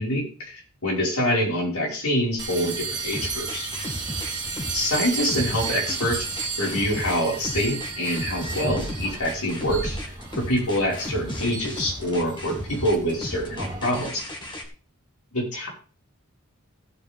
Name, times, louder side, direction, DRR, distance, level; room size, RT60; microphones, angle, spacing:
voice 1, 0.0-3.7 4.7-6.3 6.6-10.0 10.4-14.2 15.3-15.7, equal, 80° left, -2 dB, 5.7 m, -26 dB
sound 1, 2.4-14.1, right 4 dB, 20° right, 2.6 m, -33 dB
sound 2, 3.1-14.7, left 1 dB, 20° left, 2.3 m, -35 dB
16.0 x 8.4 x 3.7 m, 0.37 s
head